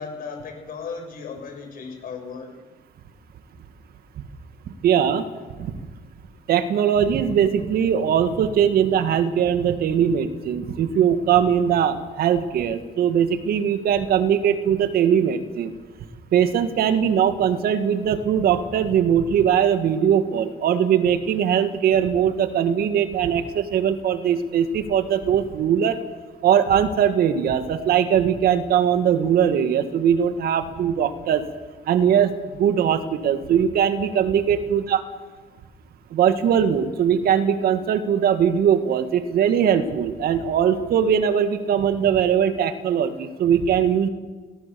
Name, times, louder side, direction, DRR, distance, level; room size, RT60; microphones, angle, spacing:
voice 1, 0.0-2.6, left 5 dB, 55° left, 4 dB, 6.8 m, -35 dB
voice 2, 4.8-5.2 5.6-5.7 6.5-15.7 16.3-26.0 26.4-31.4 31.9-35.0 36.1-44.1, right 8 dB, 65° right, 9 dB, 2.0 m, -20 dB
23.0 x 18.0 x 7.0 m, 1.3 s
cardioid pair, 110°, 17 cm